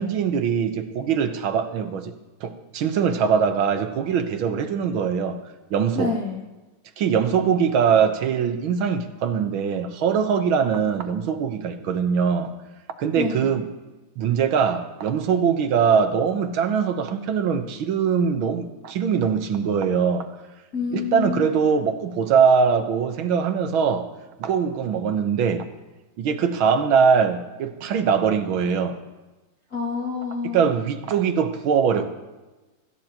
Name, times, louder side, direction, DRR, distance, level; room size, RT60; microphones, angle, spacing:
voice 1, 0.0-2.1 2.4-5.4 5.7-6.1 7.0-12.5 13.0-13.6 14.2-20.3 20.9-24.1 24.4-25.7 26.2-29.0 30.4-32.2, right 6 dB, 85° right, 7 dB, 1.9 m, -22 dB
voice 2, 5.9-6.4 13.2-13.5 20.7-21.5 29.7-30.6, left 5 dB, 50° left, -1 dB, 2.6 m, -28 dB
24.5 x 13.5 x 2.9 m, 1.2 s
omnidirectional pair, 2.2 m